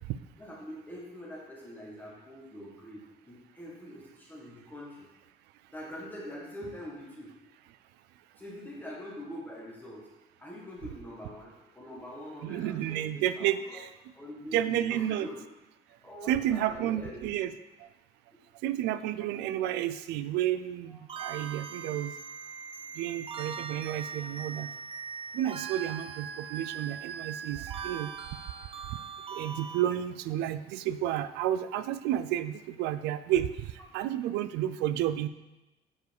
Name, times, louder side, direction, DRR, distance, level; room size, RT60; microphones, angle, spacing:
voice 1, 0.4-5.1 5.7-7.4 8.4-10.1 10.4-13.8 14.1-15.4 15.9-17.3 18.3-18.4 18.9-19.2 20.9-21.0, equal, 10° left, -5 dB, 1.6 m, -44 dB
voice 2, 12.4-13.9 14.5-15.3 16.3-17.5 18.6-22.1 23.0-24.7 25.3-28.1 29.3-33.5 33.9-35.3, right 12 dB, 90° right, 13 dB, 0.4 m, -31 dB
sound 1, 21.1-29.8, right 6 dB, 35° right, 0.6 m, -40 dB
7.2 x 4.8 x 4.7 m, 1.0 s
cardioid pair, 110°, 17 cm